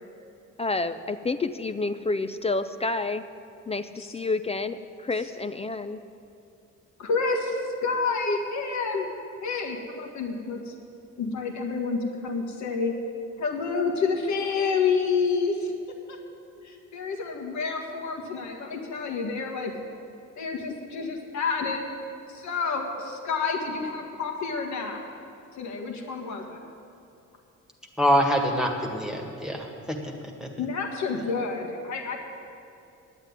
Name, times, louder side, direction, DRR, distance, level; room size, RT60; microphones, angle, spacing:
voice 1, 0.6-3.3 3.7-6.0, left 3 dB, 20° left, 11 dB, 0.4 m, -29 dB
voice 2, 7.0-9.1 9.4-10.7 11.2-12.9 13.4-15.7 16.1-16.2 16.6-19.7 20.4-21.8 22.3-25.0 25.6-26.6 30.6-32.2, left 4 dB, 70° left, 3 dB, 1.7 m, -29 dB
voice 3, 28.0-30.1 30.4-30.5, equal, ahead, 1 dB, 1.7 m, -25 dB
9.9 x 8.1 x 9.6 m, 2.7 s
cardioid pair, 90°, 30 cm